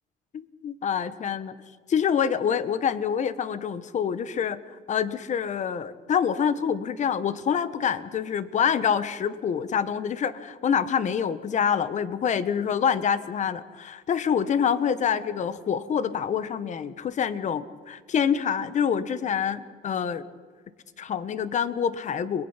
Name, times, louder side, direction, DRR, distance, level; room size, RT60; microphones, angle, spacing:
voice 1, 0.3-1.5 1.9-4.6 4.9-20.3 21.0-22.5, left 7 dB, 45° left, 14 dB, 1.2 m, -26 dB
29.5 x 22.0 x 5.8 m, 1.5 s
cardioid pair, 110°, 17 cm